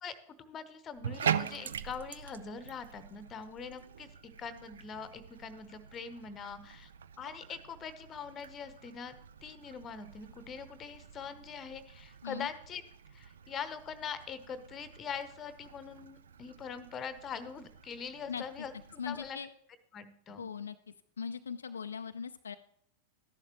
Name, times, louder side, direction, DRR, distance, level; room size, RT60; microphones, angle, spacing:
voice 1, 0.0-4.1 4.4-6.9 7.2-12.8 13.1-19.4 19.9-20.4, left 6 dB, 25° left, 12 dB, 1.0 m, -43 dB
Bathtub (filling or washing), 0.9-19.3, right 8 dB, 65° right, 0.4 m, -43 dB
voice 2, 19.0-19.5 20.4-20.8 21.2-22.6, left 6 dB, 70° left, 9 dB, 0.4 m, -39 dB
13.0 x 11.0 x 3.0 m, 0.69 s
figure-of-eight pair, 90°, 0 cm